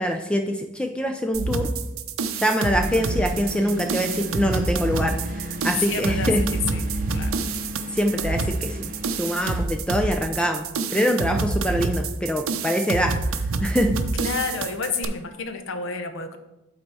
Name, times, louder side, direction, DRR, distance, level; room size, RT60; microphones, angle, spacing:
voice 1, 0.0-1.7 2.3-6.4 7.9-8.9 9.2-13.9, equal, 5° left, 5 dB, 0.3 m, -24 dB
sound 1, 1.3-15.0, right 3 dB, 85° right, 0.6 m, -27 dB
sound 2, 2.7-9.6, equal, 40° right, 0.7 m, -35 dB
voice 2, 5.9-6.3 6.7-6.8 7.1-7.4 14.2-16.4, left 4 dB, 65° left, 8 dB, 0.7 m, -30 dB
8.5 x 4.1 x 4.6 m, 0.97 s
head